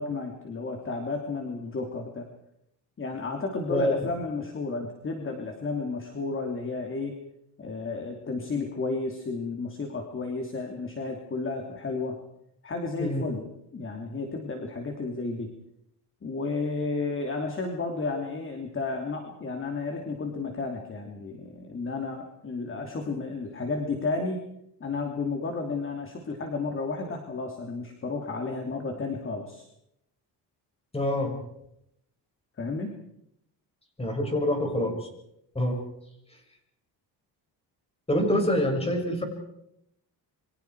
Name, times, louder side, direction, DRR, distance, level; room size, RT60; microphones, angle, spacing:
voice 1, 0.0-2.3 3.0-7.2 7.6-12.2 12.6-13.5 13.7-15.5 16.2-24.4 24.8-29.6 32.6-32.9, left 3 dB, 30° left, 3 dB, 2.9 m, -32 dB
voice 2, 30.9-31.3 34.0-35.1 35.5-35.8 38.1-39.2, left 1 dB, 15° left, 3 dB, 6.2 m, -26 dB
28.5 x 24.5 x 4.7 m, 0.79 s
cardioid pair, 140°, 42 cm